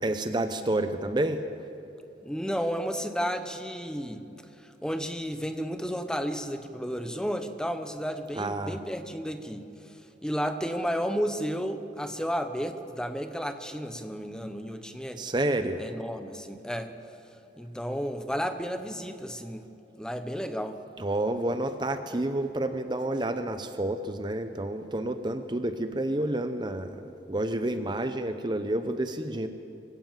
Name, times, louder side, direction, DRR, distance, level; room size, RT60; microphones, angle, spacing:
voice 1, 0.0-1.4 8.4-8.8 15.2-15.8 21.0-27.0 27.3-29.5, right 1 dB, 25° right, 9 dB, 0.7 m, -29 dB
voice 2, 2.2-4.3 4.6-15.2 15.8-16.9 17.6-19.7 20.0-20.8, equal, 5° left, 8 dB, 0.9 m, -32 dB
24.5 x 16.5 x 7.4 m, 3.0 s
head